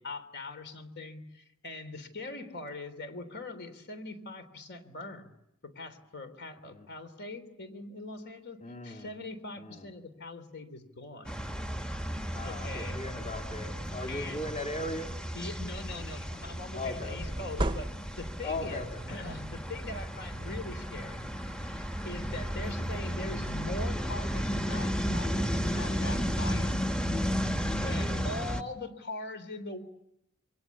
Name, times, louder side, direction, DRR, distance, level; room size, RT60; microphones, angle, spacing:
voice 1, 0.0-5.3 5.6-11.3 12.4-13.0 14.1-14.4 15.3-21.3 21.6-26.8 27.7-29.8, left 2 dB, 50° left, 9 dB, 3.5 m, -42 dB
voice 2, 8.6-9.1 9.6-9.9 12.3-15.1 16.7-17.2 18.4-19.0 27.9-28.3, left 2 dB, 30° left, 3 dB, 2.8 m, -38 dB
sound 1, 11.2-28.6, equal, 5° left, 1.3 m, -33 dB
sound 2, 14.0-14.2 14.4-15.5 17.2-18.4, right 1 dB, 20° right, 0.9 m, -35 dB
28.0 x 24.0 x 8.5 m, 0.83 s
head